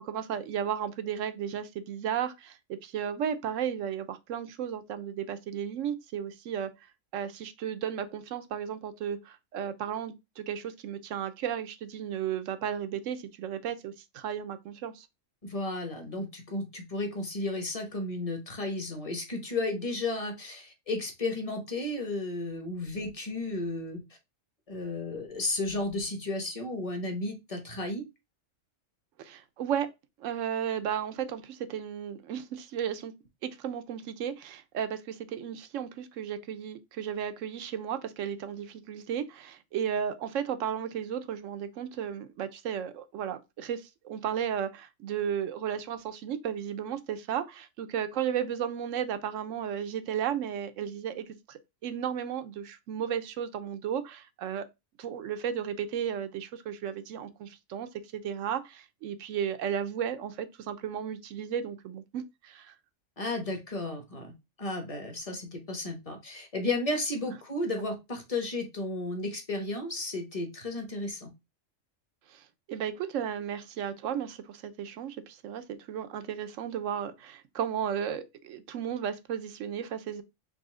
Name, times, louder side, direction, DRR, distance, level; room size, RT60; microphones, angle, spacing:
voice 1, 0.0-2.6 2.8-6.7 7.1-15.1 29.2-29.9 30.2-33.1 33.4-54.7 55.0-62.7 72.3-72.4 72.7-80.2, right 9 dB, 80° right, 1.0 m, -34 dB
voice 2, 15.4-24.0 24.7-28.0 63.2-64.3 64.6-71.3, left 2 dB, 30° left, 1.0 m, -33 dB
4.1 x 2.7 x 3.7 m
omnidirectional pair, 1.3 m